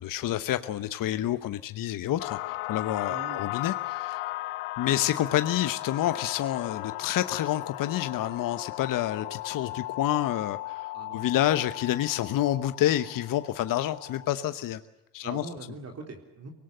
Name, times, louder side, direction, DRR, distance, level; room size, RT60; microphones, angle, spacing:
voice 1, 0.0-4.2 4.8-14.8 15.1-15.5, left 13 dB, 50° left, 11 dB, 1.1 m, -28 dB
sound 1, 2.2-14.3, left 18 dB, 75° left, 1.0 m, -36 dB
voice 2, 3.1-3.5 10.9-11.4 15.2-16.5, right 3 dB, 35° right, 3 dB, 3.8 m, -42 dB
24.0 x 18.5 x 8.1 m, 1.0 s
hypercardioid pair, 80°, 43 cm